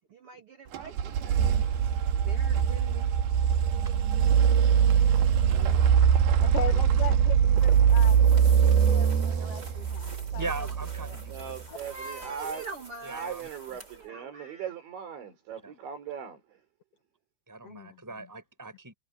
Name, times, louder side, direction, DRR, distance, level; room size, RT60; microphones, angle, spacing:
voice 1, 0.7-1.5 2.1-3.1 5.4-5.9 11.8-13.3 13.8-14.7, right 4 dB, 35° right, 2.7 m, -44 dB
sound 1, 0.7-11.5, right 8 dB, 65° right, 3.4 m, -23 dB
voice 2, 6.3-10.5 11.1-11.2 11.7-11.8 17.6-18.0, left 8 dB, 75° left, 1.4 m, -39 dB
sound 2, 7.5-14.1, right 2 dB, 20° right, 6.5 m, -48 dB
voice 3, 10.3-11.4 13.0-13.5 15.6-15.7 17.5-18.9, right 3 dB, 5° right, 5.9 m, -39 dB
voice 4, 11.3-12.7 13.1-16.6, right 7 dB, 80° right, 6.9 m, -39 dB
omnidirectional pair, 5.2 m